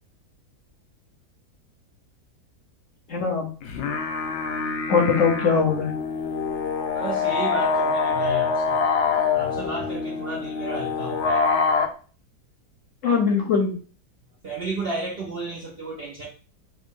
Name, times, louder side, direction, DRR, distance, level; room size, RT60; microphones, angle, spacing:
voice 1, 3.1-3.5 4.9-5.9 13.0-13.7, left 5 dB, 60° left, 1.0 m, -21 dB
sound 1, 3.6-11.9, left 5 dB, 85° left, 0.6 m, -25 dB
voice 2, 6.9-8.8 9.3-11.5 14.4-16.3, right 2 dB, 60° right, 0.6 m, -33 dB
3.2 x 2.5 x 3.6 m
omnidirectional pair, 1.8 m